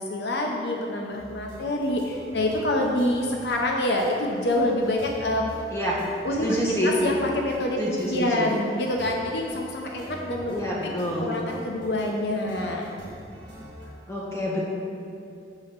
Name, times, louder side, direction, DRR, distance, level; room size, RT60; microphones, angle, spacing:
voice 1, 0.0-5.5 6.2-6.6 6.8-10.9 11.2-12.9, left 1 dB, 65° left, 0 dB, 0.7 m, -26 dB
sound 1, 1.1-13.9, equal, 25° right, 1.8 m, -45 dB
voice 2, 6.4-6.9 7.8-8.5 10.5-11.4 14.1-14.6, equal, 15° left, -6 dB, 1.4 m, -27 dB
6.9 x 4.3 x 5.8 m, 2.6 s
head